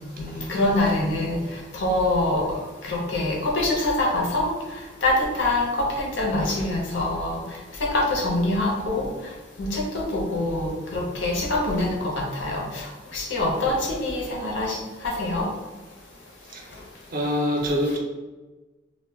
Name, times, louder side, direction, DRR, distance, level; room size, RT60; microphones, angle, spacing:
voice 1, 0.2-1.4 1.7-4.5 5.0-7.4 7.8-9.1 9.6-15.5, left 2 dB, 65° left, -2 dB, 0.6 m, -25 dB
voice 2, 17.1-18.0, equal, 45° right, 0 dB, 0.5 m, -25 dB
2.1 x 2.1 x 3.3 m, 1.2 s
head